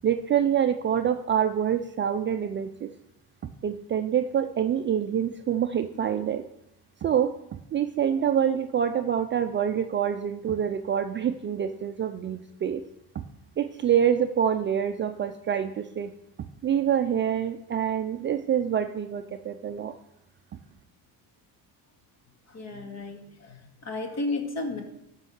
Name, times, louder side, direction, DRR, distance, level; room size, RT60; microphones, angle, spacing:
voice 1, 0.0-2.9 3.6-6.4 7.0-12.8 13.1-13.2 13.6-16.1 16.6-19.9, right 9 dB, 30° right, 7 dB, 0.4 m, -26 dB
voice 2, 22.5-24.8, left 2 dB, 40° left, 3 dB, 2.1 m, -33 dB
13.5 x 5.4 x 6.4 m, 0.80 s
cardioid pair, 150°, 40 cm